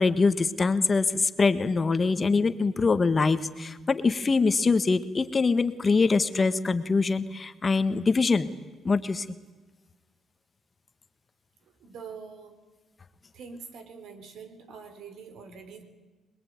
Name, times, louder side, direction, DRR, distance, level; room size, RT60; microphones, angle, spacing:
voice 1, 0.0-8.5 8.8-9.2, left 4 dB, 30° left, 11 dB, 1.6 m, -24 dB
voice 2, 11.8-12.6 13.3-15.8, right 5 dB, 75° right, 9 dB, 4.0 m, -44 dB
26.0 x 21.5 x 9.6 m, 1.2 s
cardioid pair, 90°, 0 cm